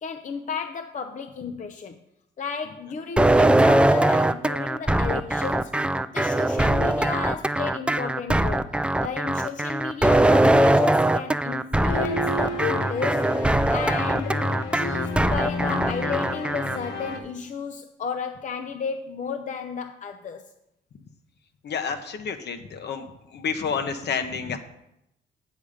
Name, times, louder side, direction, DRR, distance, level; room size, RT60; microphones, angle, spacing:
voice 1, 0.0-2.0 2.4-5.7 6.1-8.7 9.0-14.5 14.7-20.4, left 5 dB, 40° left, 7 dB, 0.6 m, -33 dB
sound 1, 3.2-16.8, right 1 dB, 5° right, 0.4 m, -21 dB
sound 2, 11.8-17.2, left 2 dB, 85° left, 1.2 m, -31 dB
voice 2, 21.6-23.1 23.3-24.6, left 6 dB, 60° left, 8 dB, 1.0 m, -29 dB
8.3 x 7.1 x 5.0 m, 0.83 s
cardioid pair, 90°, 20 cm